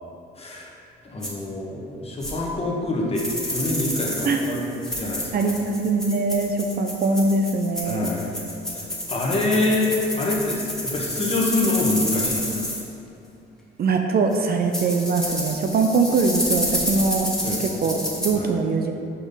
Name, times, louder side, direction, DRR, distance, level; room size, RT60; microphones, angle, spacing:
voice 1, 0.4-0.7 1.0-3.2 3.5-4.6 4.9-5.5 7.8-8.3 9.1-12.6 17.4-17.6 18.3-18.5, left 2 dB, 30° left, -4 dB, 1.3 m, -25 dB
sound 1, 1.2-1.3 2.2-2.3 3.2-12.8 14.3-14.4 14.7-18.3, left 1 dB, 5° left, 1.1 m, -29 dB
voice 2, 5.3-8.1 13.8-17.3 17.8-18.9, right 3 dB, 50° right, 4 dB, 0.5 m, -22 dB
5.5 x 5.0 x 4.0 m, 2.7 s
cardioid pair, 90°, 20 cm